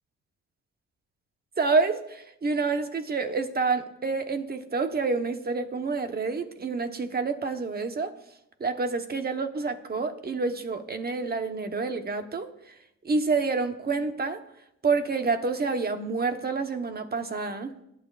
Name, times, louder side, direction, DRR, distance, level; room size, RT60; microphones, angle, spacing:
voice 1, 1.6-8.1 8.6-12.5 13.0-14.4 14.8-17.7, right 4 dB, 30° right, 7 dB, 1.1 m, -28 dB
20.0 x 9.1 x 2.5 m, 0.82 s
cardioid pair, 90°, 30 cm